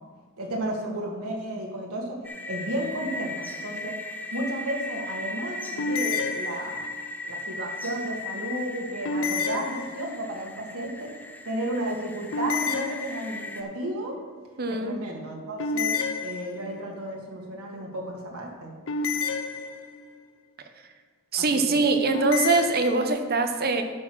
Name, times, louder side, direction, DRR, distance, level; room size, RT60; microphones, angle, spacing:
voice 1, 0.4-2.2 2.5-4.0 4.3-6.8 7.3-11.1 11.4-14.2 14.7-18.7 21.4-21.9, right 1 dB, 85° right, -1 dB, 1.8 m, -33 dB
sound 1, 2.2-13.6, left 2 dB, 10° left, 0.6 m, -37 dB
sound 2, 5.8-7.1 9.0-10.4 12.3-13.6 15.6-16.9 18.9-20.2 22.1-23.1, left 4 dB, 60° left, 0.7 m, -30 dB
voice 2, 14.6-15.0 21.3-23.8, right 3 dB, 45° right, 6 dB, 0.9 m, -23 dB
11.5 x 4.7 x 6.2 m, 1.5 s
head